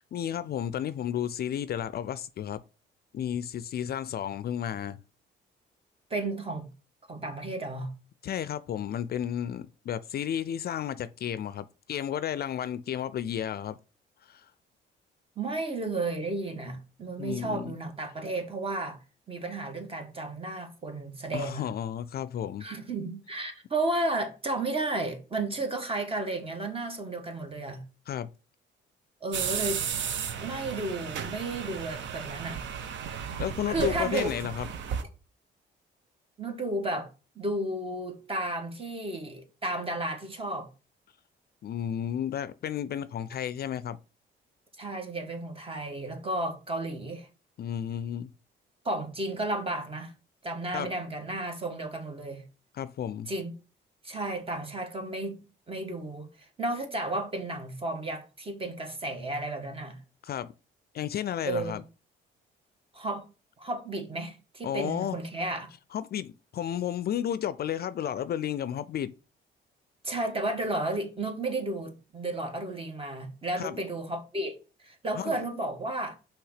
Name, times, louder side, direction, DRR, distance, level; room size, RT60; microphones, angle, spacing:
voice 1, 0.0-2.6 3.1-5.0 8.2-13.8 14.3-14.4 17.2-17.7 21.3-22.6 28.1-28.3 33.4-34.7 41.6-44.0 47.6-48.3 50.7-50.9 52.7-53.3 60.2-60.5 60.9-61.8 64.6-65.2 65.9-69.1 73.6-73.8 75.1-75.4, left 10 dB, 50° left, 0.4 m, -32 dB
voice 2, 6.1-6.7 7.1-7.9 15.4-19.0 19.3-21.7 22.6-27.8 29.2-29.9 30.4-32.6 33.1-33.4 33.7-34.3 36.4-37.1 37.3-40.7 44.8-47.3 48.8-50.1 50.4-52.4 53.3-53.5 54.0-60.0 61.4-61.8 62.9-63.2 63.6-65.7 70.0-76.1, right 2 dB, 30° right, 1.5 m, -33 dB
sound 1, 29.3-35.0, right 7 dB, 70° right, 0.8 m, -34 dB
5.7 x 3.4 x 5.7 m
cardioid pair, 90°, 20 cm